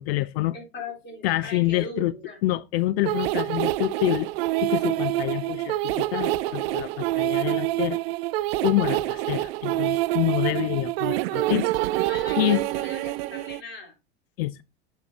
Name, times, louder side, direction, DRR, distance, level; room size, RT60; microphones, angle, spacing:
voice 1, 0.0-0.6 1.2-2.1 2.4-4.3 4.6-8.0 8.6-11.7 12.4-12.6 14.4-14.6, left 17 dB, 65° left, 0.5 m, -26 dB
voice 2, 0.5-2.4 11.2-11.4 11.9-13.9, left 2 dB, 35° left, 3.6 m, -39 dB
sound 1, 3.1-13.6, right 17 dB, 65° right, 0.4 m, -26 dB
7.1 x 6.3 x 2.8 m
hypercardioid pair, 90°, 33 cm